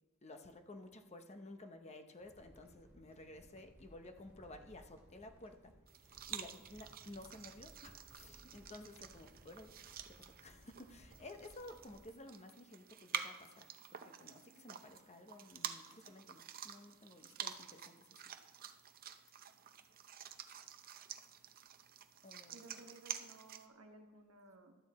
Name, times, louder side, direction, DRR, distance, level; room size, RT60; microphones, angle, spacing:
voice 1, 0.2-9.7 10.1-18.3 22.2-22.6, left 2 dB, 30° left, 7 dB, 0.8 m, -54 dB
sound 1, 2.2-12.1, equal, 10° right, 2.9 m, -63 dB
sound 2, 5.9-23.7, right 8 dB, 45° right, 0.6 m, -49 dB
voice 2, 22.5-24.8, right 2 dB, 75° right, 4 dB, 1.3 m, -58 dB
12.5 x 8.5 x 4.2 m, 1.2 s
head